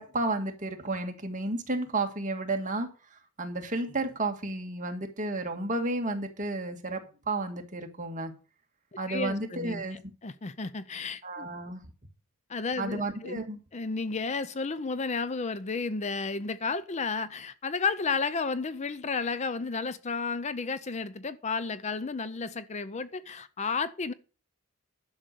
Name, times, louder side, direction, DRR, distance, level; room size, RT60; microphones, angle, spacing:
voice 1, 0.0-2.9 3.4-8.3 9.0-10.0 11.2-11.8 12.8-13.6, right 2 dB, 35° right, 1.8 m, -32 dB
voice 2, 9.1-11.5 12.5-13.4 13.7-24.1, left 4 dB, 30° left, 0.5 m, -32 dB
11.0 x 6.4 x 6.7 m
head